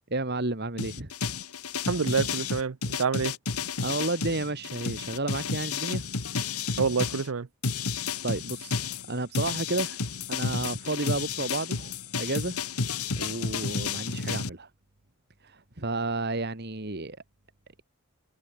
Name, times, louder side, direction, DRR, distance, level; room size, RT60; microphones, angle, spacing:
voice 1, 0.1-1.1 3.8-6.1 8.2-8.7 9.1-10.0 10.3-12.6 13.2-14.7 15.4-17.2, right 2 dB, 50° right, 2.0 m, -31 dB
sound 1, 0.8-7.3 7.6-14.5, left 5 dB, 90° left, 1.9 m, -31 dB
voice 2, 1.9-3.3 6.8-7.5, right 5 dB, 70° right, 0.6 m, -27 dB
head